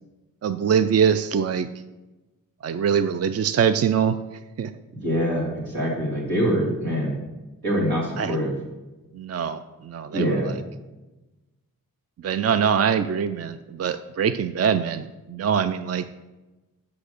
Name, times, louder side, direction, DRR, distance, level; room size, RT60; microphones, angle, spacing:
voice 1, 0.4-1.7 2.6-4.2 4.6-4.7 8.2-8.4 9.2-9.6 9.9-10.5 12.2-16.0, right 7 dB, 45° right, 11 dB, 0.5 m, -23 dB
voice 2, 5.0-7.2 7.6-8.5 10.1-10.5, equal, 85° right, -4 dB, 2.8 m, -24 dB
6.2 x 5.8 x 6.6 m, 1.1 s
cardioid pair, 40°, 35 cm